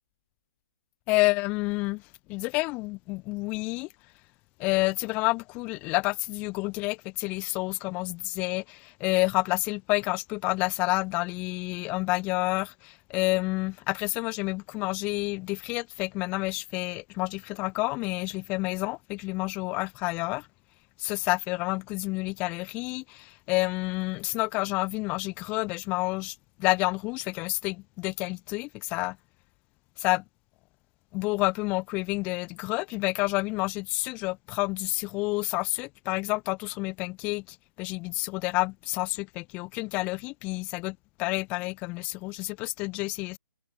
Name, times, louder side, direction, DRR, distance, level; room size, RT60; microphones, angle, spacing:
voice 1, 1.1-2.0 2.3-3.9 4.6-20.5 21.0-29.2 30.0-30.2 31.1-43.4, left 24 dB, 10° left, 1.5 m, -29 dB
hypercardioid pair, 180°, 11 cm